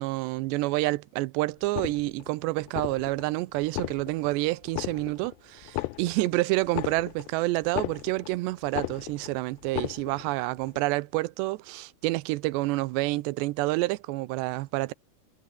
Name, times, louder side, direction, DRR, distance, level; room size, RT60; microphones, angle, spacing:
voice 1, 0.0-14.9, right 20 dB, 90° right, 2.9 m, -28 dB
sound 1, 1.6-2.3 2.7-3.3 3.6-4.3 4.7-5.3 5.6-8.4 8.7-9.3 9.6-10.3 10.7-10.8, left 20 dB, 85° left, 2.9 m, -35 dB
omnidirectional pair, 4.9 m